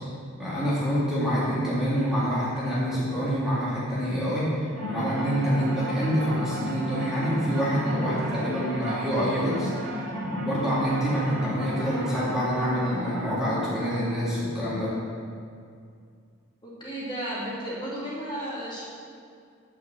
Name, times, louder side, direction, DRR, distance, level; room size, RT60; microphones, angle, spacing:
voice 1, 0.4-14.9, equal, 5° right, -9 dB, 2.7 m, -26 dB
sound 1, 4.7-14.0, equal, 85° right, 2.4 m, -34 dB
voice 2, 16.6-18.8, right 1 dB, 25° left, -8 dB, 2.8 m, -33 dB
8.9 x 7.1 x 7.2 m, 2.3 s
head